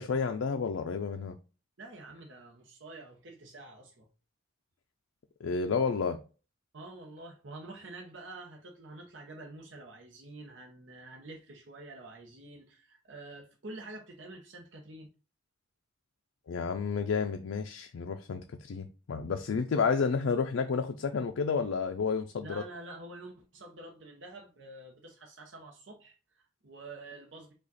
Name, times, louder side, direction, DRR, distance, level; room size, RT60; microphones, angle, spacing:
voice 1, 0.0-1.4 5.4-6.2 16.5-22.6, left 5 dB, 85° left, 0.4 m, -31 dB
voice 2, 1.8-4.1 6.7-15.1 22.4-27.5, right 2 dB, 70° right, 0.9 m, -47 dB
5.0 x 2.4 x 4.0 m
head